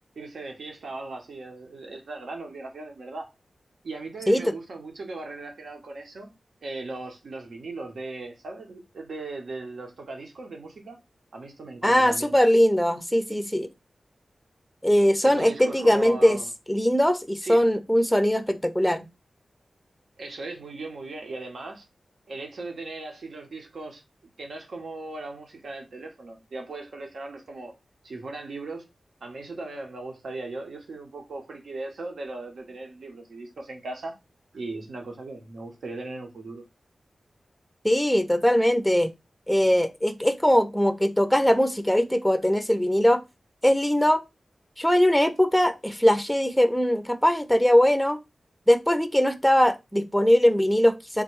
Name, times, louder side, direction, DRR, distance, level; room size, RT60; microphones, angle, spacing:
voice 1, 0.2-3.3 3.8-6.3 6.6-11.0 11.3-12.3 15.2-16.5 17.4-17.7 20.2-21.8 22.3-24.0 24.4-27.7 28.0-28.9 29.2-34.2 34.5-36.6, right 2 dB, 85° right, 0.9 m, -38 dB
voice 2, 11.8-13.7 14.8-16.4 16.7-19.1 37.8-39.1 39.5-43.2 43.6-44.2 44.8-48.2 48.7-51.2, equal, ahead, 0.5 m, -21 dB
3.7 x 2.2 x 4.4 m
wide cardioid pair, 80°, 0 cm